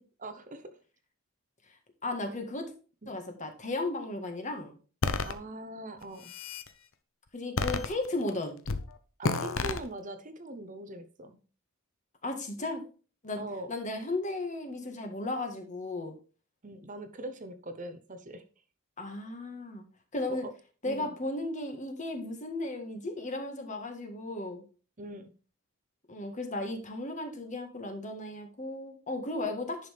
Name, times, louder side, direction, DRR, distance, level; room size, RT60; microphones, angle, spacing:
voice 1, 0.2-0.7 2.3-2.4 3.0-3.2 5.2-6.3 9.2-11.4 13.4-13.7 16.6-18.4 20.3-20.5 20.8-21.1 25.0-25.3, right 1 dB, 35° right, 9 dB, 0.9 m, -42 dB
voice 2, 2.0-2.7 3.1-4.8 7.3-8.6 12.2-12.8 13.2-13.4 13.7-16.2 19.0-19.8 20.1-20.4 20.8-24.7 26.1-29.9, left 2 dB, 35° left, 5 dB, 1.7 m, -35 dB
sound 1, 5.0-5.3 6.0-6.7 7.6-8.3 8.7-8.9 9.2-9.8, left 3 dB, 65° left, 0.8 m, -30 dB
10.5 x 5.7 x 3.5 m, 0.37 s
head